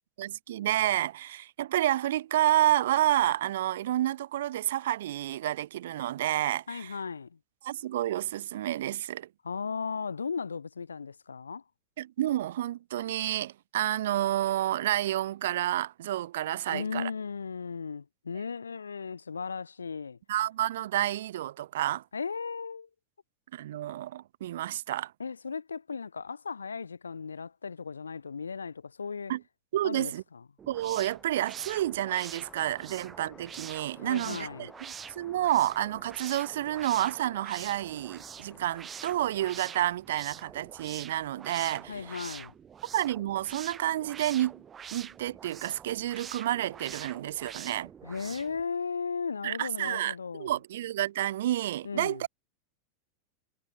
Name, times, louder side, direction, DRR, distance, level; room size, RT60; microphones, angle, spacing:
voice 1, 0.2-6.9 7.6-9.3 12.0-17.1 20.3-22.0 23.5-25.1 29.3-29.4 29.7-30.2 30.7-34.7 35.2-42.0 42.9-44.6 44.9-47.9 49.4-52.3, right 13 dB, 60° right, 0.4 m, -29 dB
voice 2, 6.7-7.4 9.4-11.6 16.7-20.2 22.1-22.9 25.2-29.3 29.8-30.4 34.0-34.7 41.9-42.5 48.0-50.5 51.8-52.2, left 5 dB, 75° left, 2.8 m, -36 dB
sound 1, 30.6-48.6, right 8 dB, 25° right, 1.2 m, -46 dB
sound 2, 31.0-40.0, left 5 dB, 20° left, 7.0 m, -56 dB
figure-of-eight pair, 85°, 0 cm